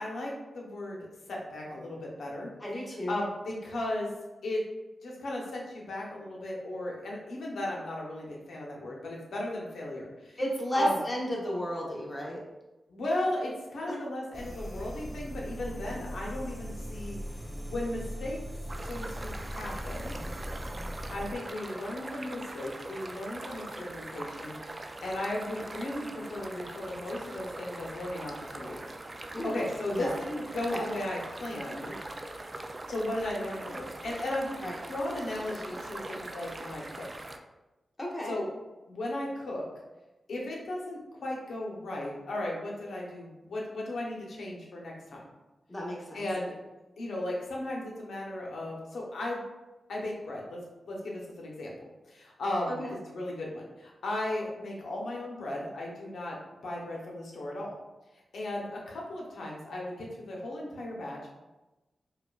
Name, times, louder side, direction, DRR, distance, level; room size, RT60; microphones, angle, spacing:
voice 1, 0.0-2.5 3.1-4.1 4.4-4.6 5.0-10.4 10.7-10.9 12.9-17.2 17.7-18.4 18.8-20.2 21.1-28.9 29.1-32.0 32.9-34.6 34.9-37.1 38.2-38.5 38.9-39.6 40.3-45.2 46.1-46.5 47.0-49.4 49.9-51.7 52.1-56.4 56.6-57.7 58.3-61.3, left 1 dB, 85° left, -3 dB, 0.9 m, -36 dB
voice 2, 2.6-3.2 10.4-12.4 13.9-14.0 15.6-16.0 29.3-29.5 29.9-30.1 30.7-30.9 34.6-34.8 38.0-38.3 45.7-46.2 52.7-52.9, equal, 35° left, -3 dB, 0.9 m, -33 dB
sound 1, 14.3-21.4, equal, 10° left, 0.7 m, -39 dB
sound 2, 18.7-37.4, right 2 dB, 40° right, 0.3 m, -42 dB
4.7 x 2.4 x 2.3 m, 1.1 s
cardioid pair, 50°, 0 cm